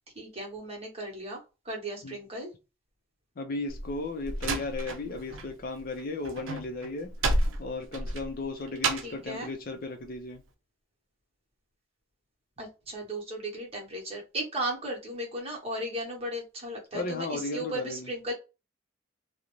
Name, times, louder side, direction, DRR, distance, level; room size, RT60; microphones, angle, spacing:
voice 1, 0.1-1.4 1.6-2.5 9.0-9.5 12.6-18.3, right 1 dB, 30° right, 0.9 m, -36 dB
voice 2, 3.4-7.1 7.6-10.4 16.9-18.1, left 3 dB, 45° left, 0.4 m, -35 dB
Slam, 3.7-5.5 5.8-9.3, right 2 dB, 80° right, 0.5 m, -31 dB
2.5 x 2.0 x 2.9 m
head